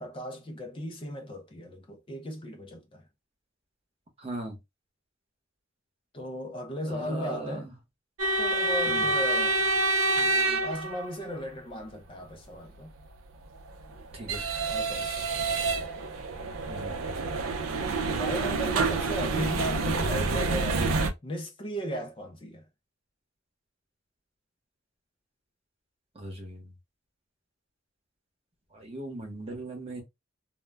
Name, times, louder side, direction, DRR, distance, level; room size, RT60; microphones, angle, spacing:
voice 1, 0.0-3.0 6.1-7.7 8.3-9.6 10.2-12.9 14.7-15.3 16.7-16.8 18.1-22.6, equal, 25° left, 0.4 m, -36 dB
voice 2, 4.2-4.6 6.9-7.7 8.9-9.1 14.1-14.4 16.7-17.0 26.2-26.7 28.7-30.0, right 1 dB, 30° right, 0.8 m, -38 dB
sound 1, 8.2-11.4 13.4-21.1, right 3 dB, 85° right, 0.5 m, -28 dB
2.1 x 2.0 x 3.3 m
head